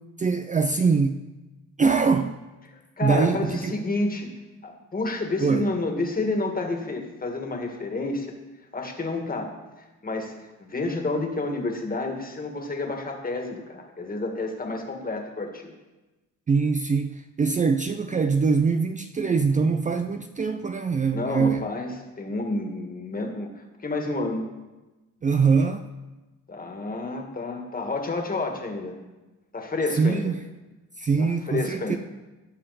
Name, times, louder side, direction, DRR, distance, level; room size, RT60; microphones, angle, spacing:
voice 1, 0.2-1.2 1.8-2.4 3.0-3.8 5.4-5.7 16.5-21.6 25.2-25.8 30.0-30.3 31.0-32.0, right 5 dB, 25° right, 8 dB, 0.5 m, -23 dB
voice 2, 2.7-4.3 4.6-8.3 8.7-9.5 10.0-10.3 10.6-15.7 21.1-21.9 22.2-24.5 26.5-28.9 29.5-30.3 31.2-32.0, left 2 dB, 30° left, 3 dB, 1.9 m, -29 dB
17.0 x 5.7 x 4.2 m, 1.1 s
cardioid pair, 90°, 30 cm